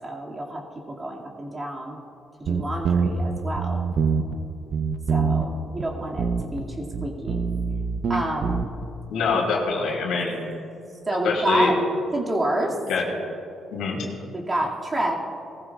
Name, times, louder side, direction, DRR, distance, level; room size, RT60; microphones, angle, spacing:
voice 1, 0.0-2.0 2.5-3.8 5.1-7.4 8.1-8.6 9.3-9.4 11.1-11.7 12.1-12.8 14.3-15.1, right 1 dB, 30° right, -2 dB, 2.3 m, -28 dB
sound 1, 2.5-4.4 4.7-5.5 5.8-5.9 6.2-6.6 6.9-8.9, right 5 dB, 60° right, 0.7 m, -24 dB
voice 2, 9.1-10.4 11.2-11.7 12.9-13.0 13.7-14.1, left 4 dB, 80° left, 0 dB, 2.8 m, -24 dB
19.5 x 14.5 x 2.4 m, 2.7 s
cardioid pair, 90°, 0 cm